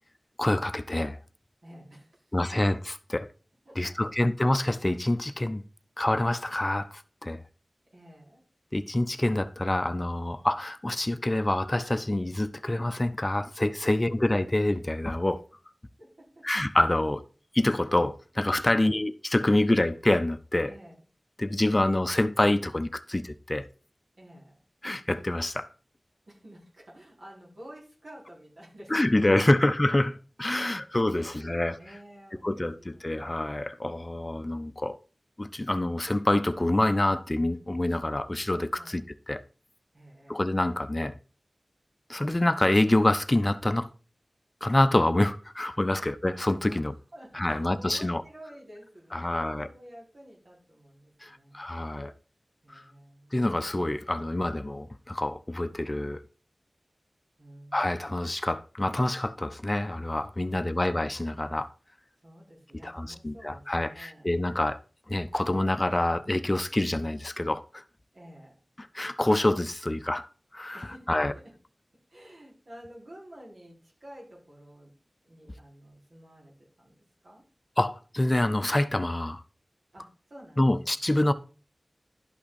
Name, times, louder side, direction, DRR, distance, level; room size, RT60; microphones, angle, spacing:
voice 1, 0.4-1.2 2.3-3.3 3.8-5.6 6.0-7.4 8.7-15.4 16.4-17.2 17.5-20.7 21.4-23.7 24.8-25.7 28.9-31.8 32.4-35.0 35.4-39.0 39.3-39.4 40.3-41.2 42.1-43.9 44.6-46.9 47.3-48.2 49.1-49.7 51.2-52.1 52.7-52.8 53.3-56.2 57.7-61.7 62.8-64.8 65.1-67.8 68.9-70.3 70.5-71.3 77.8-79.4 80.6-81.3, left 1 dB, 30° left, 0.6 m, -26 dB
voice 2, 1.6-2.4 3.6-4.1 7.9-8.4 13.8-13.9 16.0-16.5 18.6-19.0 20.7-21.0 24.1-24.6 26.3-29.6 30.6-30.9 31.1-33.2 33.8-34.2 38.8-39.0 39.9-40.4 45.9-46.1 46.6-51.6 52.6-53.5 57.4-58.2 60.4-61.1 62.2-64.3 68.1-68.6 70.7-71.5 72.1-74.9 75.2-77.4 79.9-81.0, equal, 75° right, 5.0 m, -50 dB
11.5 x 5.6 x 4.3 m
wide cardioid pair, 70°, 0 cm